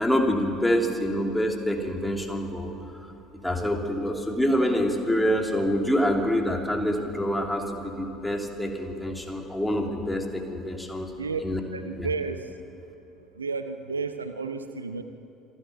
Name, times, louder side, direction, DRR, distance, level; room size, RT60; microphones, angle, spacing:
voice 1, 0.0-2.7 3.0-3.1 3.4-11.1 11.4-11.6 12.0-12.1, equal, 5° left, 2 dB, 3.0 m, -26 dB
voice 2, 11.7-12.5 13.4-15.0, right 4 dB, 80° right, 10 dB, 0.8 m, -31 dB
26.5 x 12.0 x 9.4 m, 2.7 s
figure-of-eight pair, 60°, 0 cm